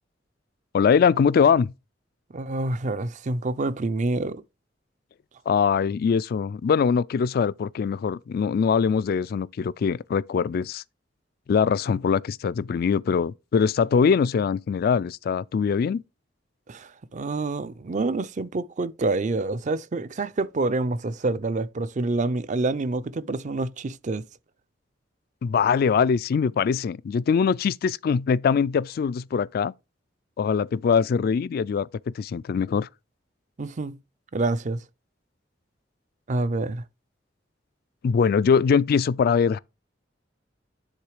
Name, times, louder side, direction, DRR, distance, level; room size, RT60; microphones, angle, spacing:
voice 1, 0.7-1.7 5.5-10.8 11.5-16.0 25.4-29.7 30.4-31.9 32.2-32.9 38.0-39.6, left 6 dB, 55° left, 0.3 m, -22 dB
voice 2, 2.3-4.4 16.7-24.2 33.6-34.0 34.3-34.8 36.3-36.8, right 2 dB, 40° right, 0.5 m, -27 dB
10.0 x 3.7 x 4.9 m
head